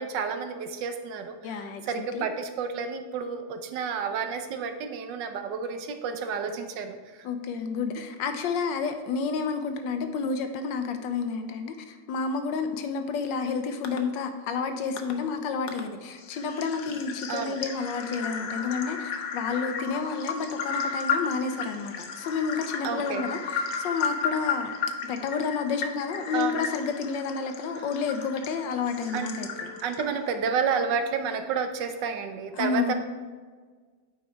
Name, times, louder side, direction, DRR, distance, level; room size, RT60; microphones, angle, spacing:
voice 1, 0.0-7.3 16.9-17.0 17.3-17.6 22.8-23.3 26.3-26.6 29.1-29.3 29.8-32.9, right 6 dB, 80° right, 7 dB, 1.4 m, -30 dB
voice 2, 1.4-2.2 7.2-24.7 25.1-29.7 32.5-32.9, left 5 dB, 90° left, 7 dB, 1.4 m, -30 dB
sound 1, 13.8-14.0 15.0-15.1 15.7-15.8 16.2-30.4, left 5 dB, 60° left, 1.1 m, -34 dB
8.4 x 5.3 x 4.5 m, 1.5 s
omnidirectional pair, 1.9 m